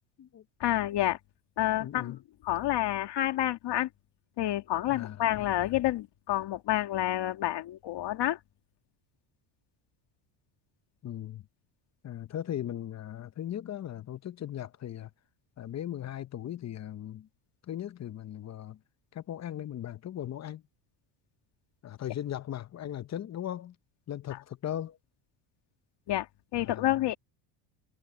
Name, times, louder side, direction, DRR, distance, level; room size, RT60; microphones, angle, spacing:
voice 1, 0.6-1.2 1.6-3.9 4.4-8.4 24.3-24.4 26.1-27.2, left 14 dB, 55° left, 2.3 m, -29 dB
voice 2, 1.8-2.2 4.9-5.7 11.0-11.4 12.0-15.1 15.6-17.3 17.7-18.8 19.1-20.6 21.8-23.8 24.1-25.0 26.5-26.9, left 11 dB, 35° left, 0.9 m, -38 dB
supercardioid pair, 100°, 49 cm